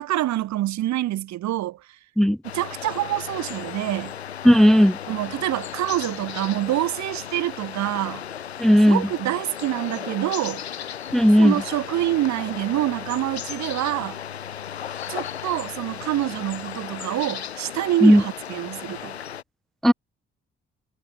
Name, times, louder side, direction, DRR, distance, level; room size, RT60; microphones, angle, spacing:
voice 1, 0.0-1.8 2.5-4.2 5.1-8.2 8.9-10.6 11.4-14.2 15.1-19.2, right 14 dB, 60° right, 2.1 m, -26 dB
sound 1, 2.4-19.4, left 9 dB, 85° left, 5.2 m, -35 dB
voice 2, 4.4-5.0 8.6-9.0 11.1-11.5 18.0-18.2 19.8-19.9, equal, ahead, 0.6 m, -14 dB
figure-of-eight pair, 45°, 32 cm